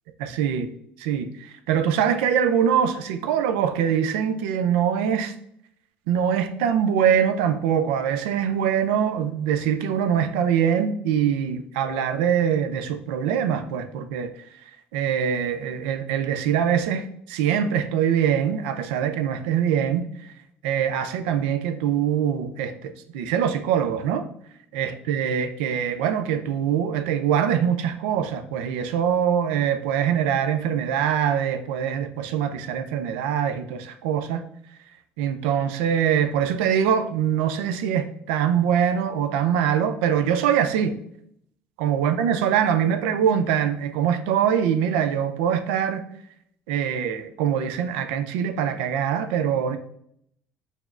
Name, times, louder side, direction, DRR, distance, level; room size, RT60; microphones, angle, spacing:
voice 1, 0.2-0.7 1.0-5.3 6.1-14.3 14.9-20.1 20.6-24.2 24.7-34.5 35.2-41.0 41.8-46.1 46.7-49.8, right 8 dB, 85° right, 9 dB, 0.3 m, -23 dB
4.1 x 2.9 x 2.4 m, 0.70 s
supercardioid pair, 70°, 6 cm